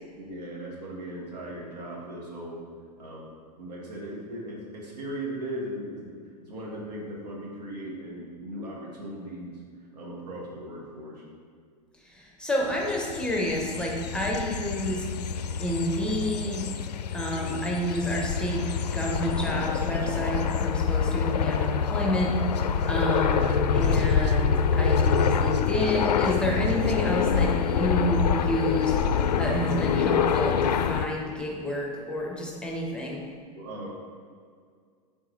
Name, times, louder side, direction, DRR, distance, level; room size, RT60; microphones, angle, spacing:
voice 1, 0.1-2.6 3.0-3.3 3.6-11.2 33.5-33.9, right 1 dB, 75° right, -2 dB, 1.6 m, -38 dB
voice 2, 12.0-15.1 15.6-16.7 17.1-28.9 29.4-33.2, equal, 5° left, -2 dB, 1.0 m, -29 dB
sound 1, 12.7-31.1, left 7 dB, 80° left, 0.4 m, -26 dB
7.4 x 4.2 x 3.3 m, 2.1 s
hypercardioid pair, 95°, 21 cm